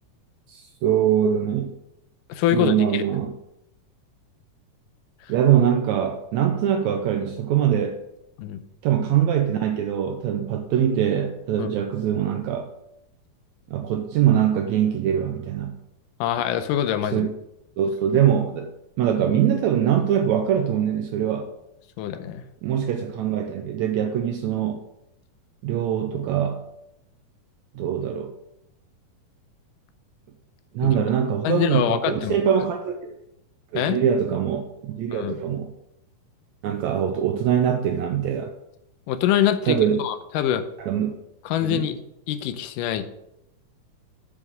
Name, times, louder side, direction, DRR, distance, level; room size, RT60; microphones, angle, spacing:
voice 1, 0.5-1.7 2.5-3.3 5.3-8.0 8.8-12.7 13.7-15.8 17.1-17.3 17.8-18.7 19.0-21.5 22.6-24.8 25.6-26.6 27.7-28.3 30.7-33.1 33.7-35.7 36.6-38.5 39.7-40.0 40.9-41.2 41.6-41.9, right 9 dB, 80° right, 6 dB, 1.7 m, -23 dB
voice 2, 2.3-3.0 8.4-8.6 11.6-11.7 16.2-17.3 22.0-22.4 30.8-31.0 31.4-32.4 33.7-34.0 35.1-35.4 39.1-40.6 41.5-42.0 42.3-43.1, left 10 dB, 85° left, 11 dB, 2.2 m, -24 dB
7.3 x 5.0 x 6.0 m, 0.84 s
omnidirectional pair, 3.8 m